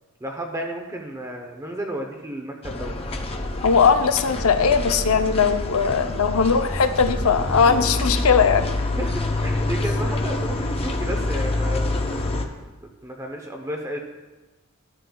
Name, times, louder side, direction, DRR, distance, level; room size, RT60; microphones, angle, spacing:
voice 1, 0.2-3.0 8.8-12.4 12.8-14.0, right 1 dB, 15° right, 2 dB, 0.7 m, -32 dB
sound 1, 2.6-12.4, left 2 dB, 25° left, 0.6 m, -26 dB
voice 2, 3.6-8.7, left 6 dB, 70° left, 8 dB, 0.6 m, -19 dB
13.0 x 8.7 x 2.3 m, 1.2 s
head